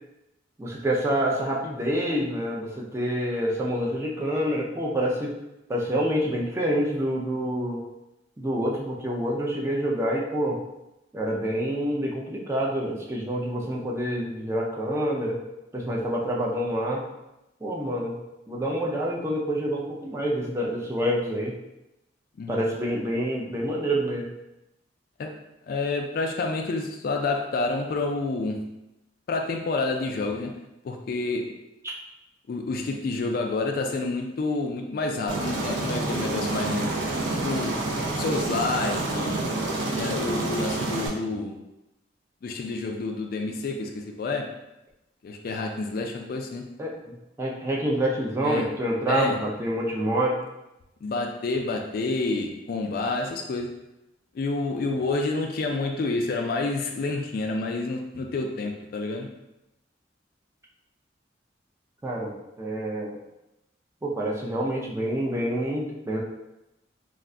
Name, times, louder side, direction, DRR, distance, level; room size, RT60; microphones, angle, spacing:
voice 1, 0.6-5.3 5.7-7.8 8.4-10.6 11.1-15.4 15.7-17.0 17.6-18.2 18.5-21.5 22.5-24.3 31.8-31.9 46.8-50.4 62.0-62.3 62.6-63.2 64.0-66.2, equal, 15° right, -3 dB, 0.4 m, -27 dB
voice 2, 25.7-28.6 29.3-30.6 30.8-31.5 32.5-36.9 37.4-37.8 38.2-39.5 40.0-41.6 42.4-44.6 45.2-46.6 48.4-48.7 49.1-49.4 51.0-53.7 54.3-59.3, left 3 dB, 55° left, 3 dB, 0.3 m, -29 dB
Aircraft, 35.3-41.1, right 2 dB, 85° right, 0.6 m, -28 dB
2.4 x 2.2 x 3.6 m, 0.92 s
head